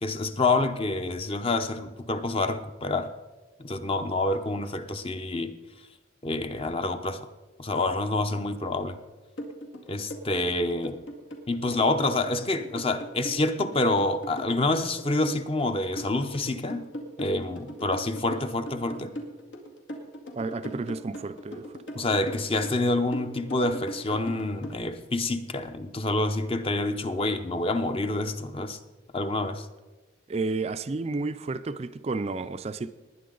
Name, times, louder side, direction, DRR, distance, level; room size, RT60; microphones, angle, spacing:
voice 1, 0.0-3.1 3.6-5.5 6.2-7.3 7.6-9.0 9.9-11.0 11.5-16.9 17.2-19.2 21.9-28.8 29.1-29.7, left 2 dB, 30° left, 0.7 m, -27 dB
sound 1, 9.4-24.8, equal, 80° left, 2.2 m, -39 dB
voice 2, 20.3-21.8 30.3-32.9, right 3 dB, 35° right, 0.4 m, -31 dB
19.5 x 10.0 x 3.9 m
head